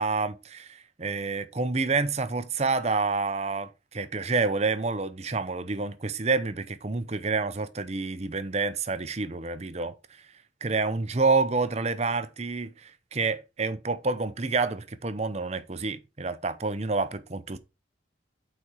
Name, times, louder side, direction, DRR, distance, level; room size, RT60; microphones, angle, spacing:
voice 1, 0.0-9.9 10.6-17.6, right 4 dB, 35° right, 0.7 m, -28 dB
8.4 x 4.4 x 4.8 m
head